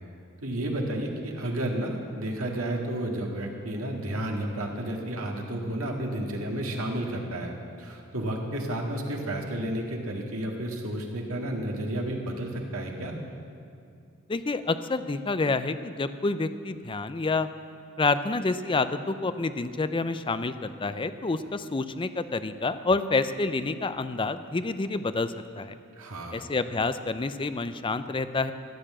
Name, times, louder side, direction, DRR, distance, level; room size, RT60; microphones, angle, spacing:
voice 1, 0.4-13.2 26.0-26.5, right 1 dB, 80° right, 1 dB, 1.9 m, -32 dB
voice 2, 14.3-17.5 18.0-25.7 26.3-28.5, left 3 dB, 25° left, 11 dB, 0.5 m, -28 dB
14.5 x 9.0 x 7.5 m, 2.5 s
head